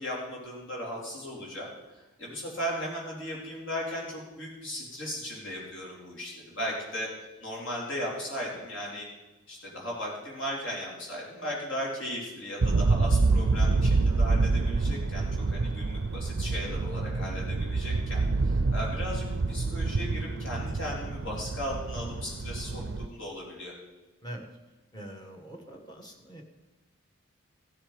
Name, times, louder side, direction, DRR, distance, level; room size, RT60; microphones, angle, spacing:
voice 1, 0.0-7.1 7.4-9.1 9.5-23.7, equal, 60° left, -3 dB, 3.9 m, -37 dB
sound 1, 12.6-23.1, right 3 dB, 55° right, 0.5 m, -27 dB
voice 2, 24.9-26.4, right 1 dB, 20° left, 2 dB, 1.4 m, -43 dB
16.0 x 7.4 x 5.2 m, 1.1 s
head